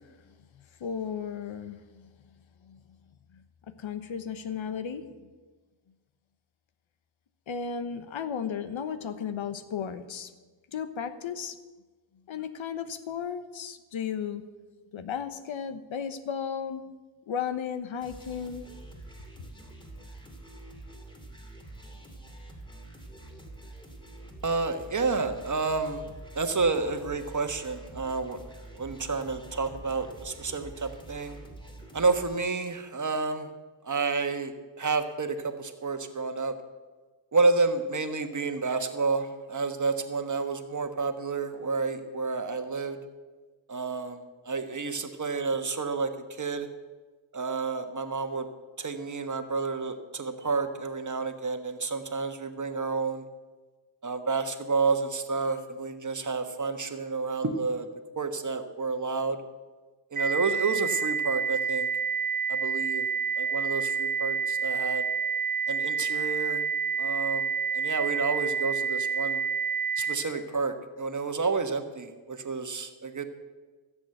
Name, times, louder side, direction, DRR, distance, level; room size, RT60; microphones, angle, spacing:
voice 1, 0.5-2.1 2.6-2.8 3.3-5.3 7.5-10.3 10.7-11.6 12.3-14.4 14.9-16.8 17.3-18.7, left 7 dB, 70° left, 11 dB, 1.1 m, -35 dB
sound 1, 18.0-32.3, right 1 dB, 10° left, 2.7 m, -46 dB
voice 2, 24.4-26.0 26.3-28.4 28.7-31.4 31.9-33.5 33.8-36.5 37.3-43.0 43.7-46.7 47.3-48.5 48.8-53.2 54.0-57.9 58.1-59.4 60.1-61.9 62.5-63.1 63.4-65.0 65.7-66.6 67.0-67.5 67.7-69.4 70.0-73.3, right 4 dB, 35° right, 7 dB, 1.4 m, -30 dB
sound 2, 60.2-70.2, right 6 dB, 20° right, 1.5 m, -29 dB
15.5 x 7.5 x 7.8 m, 1.3 s
cardioid pair, 75°, 49 cm